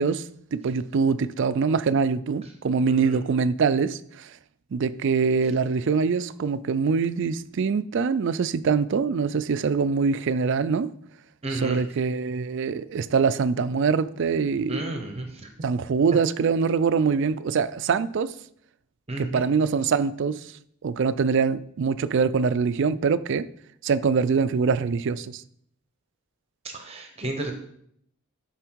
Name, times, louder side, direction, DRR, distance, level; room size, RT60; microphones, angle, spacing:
voice 1, 0.0-4.3 4.7-10.9 11.5-14.8 15.6-18.3 19.2-20.5 20.8-23.5 23.8-25.4, right 5 dB, 55° right, 0.3 m, -24 dB
voice 2, 11.4-11.8 14.7-15.5 19.1-19.4 26.6-27.5, right 2 dB, 30° right, 0.9 m, -32 dB
11.0 x 4.3 x 4.6 m
head